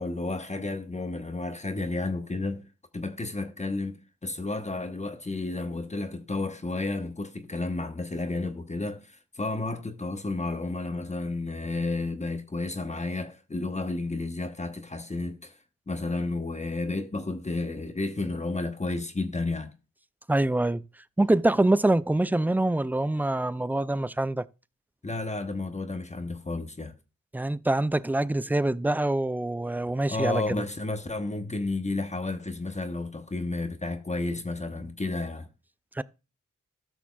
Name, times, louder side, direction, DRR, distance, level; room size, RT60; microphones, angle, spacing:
voice 1, 0.0-2.7 2.9-15.6 15.9-19.7 25.0-27.0 30.1-35.5, left 2 dB, 25° left, 1.0 m, -32 dB
voice 2, 20.3-20.8 21.2-24.4 27.3-30.6 36.0-36.1, right 2 dB, 5° right, 0.3 m, -25 dB
13.5 x 6.0 x 2.3 m
cardioid pair, 55°, 30 cm